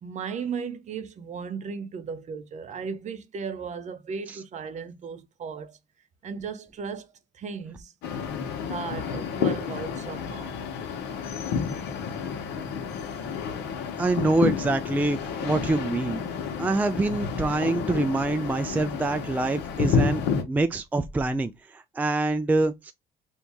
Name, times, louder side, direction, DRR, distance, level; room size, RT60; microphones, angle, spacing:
voice 1, 0.0-5.8 6.2-7.1 7.3-7.9 8.6-10.6, right 6 dB, 45° right, 0.7 m, -36 dB
sound 1, 8.0-20.4, left 6 dB, 85° left, 1.0 m, -30 dB
voice 2, 14.0-16.2 16.6-22.9, right 2 dB, 10° right, 0.3 m, -25 dB
2.8 x 2.7 x 3.4 m
cardioid pair, 110°, 17 cm